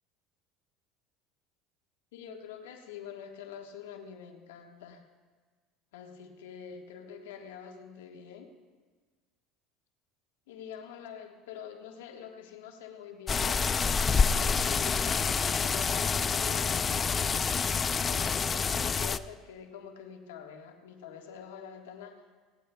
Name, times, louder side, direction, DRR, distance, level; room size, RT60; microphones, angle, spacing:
voice 1, 2.1-5.0 5.9-8.5 10.5-13.7 14.2-17.4 18.0-22.2, left 7 dB, 85° left, 3 dB, 1.4 m, -45 dB
sound 1, 13.3-19.2, left 5 dB, 30° left, 0.4 m, -27 dB
18.0 x 17.5 x 2.3 m, 1.4 s
supercardioid pair, 90°, 0 cm